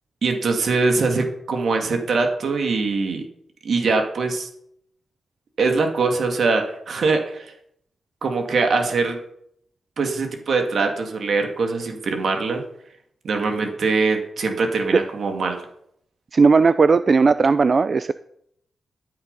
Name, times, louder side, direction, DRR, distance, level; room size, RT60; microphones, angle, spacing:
voice 1, 0.2-3.2 3.6-4.5 5.6-7.5 8.2-9.2 10.0-12.6 13.2-15.6, right 4 dB, 65° right, 4 dB, 2.2 m, -22 dB
voice 2, 16.3-18.1, right 4 dB, 45° right, 13 dB, 0.4 m, -16 dB
13.0 x 8.9 x 5.4 m, 0.72 s
cardioid pair, 95°, 0 cm